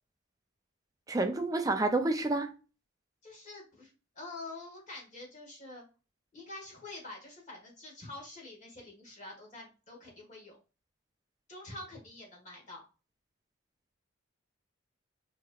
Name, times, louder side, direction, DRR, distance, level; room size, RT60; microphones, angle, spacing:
voice 1, 1.1-2.5, right 2 dB, 15° right, 0.4 m, -29 dB
voice 2, 3.2-5.8 6.3-10.6 11.5-12.8, left 2 dB, 35° left, 1.6 m, -47 dB
4.6 x 2.8 x 2.4 m
head